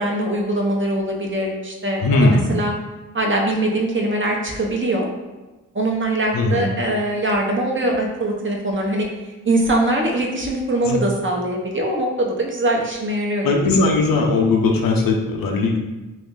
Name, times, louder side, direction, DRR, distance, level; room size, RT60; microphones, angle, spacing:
voice 1, 0.0-2.7 3.1-5.1 5.7-9.1 9.4-13.5, right 1 dB, 35° right, 0 dB, 0.8 m, -22 dB
voice 2, 2.0-2.4 6.3-6.6 10.8-11.0 13.4-15.8, left 3 dB, 85° left, 1 dB, 0.6 m, -18 dB
3.0 x 2.4 x 3.7 m, 1.1 s
cardioid pair, 60°, 34 cm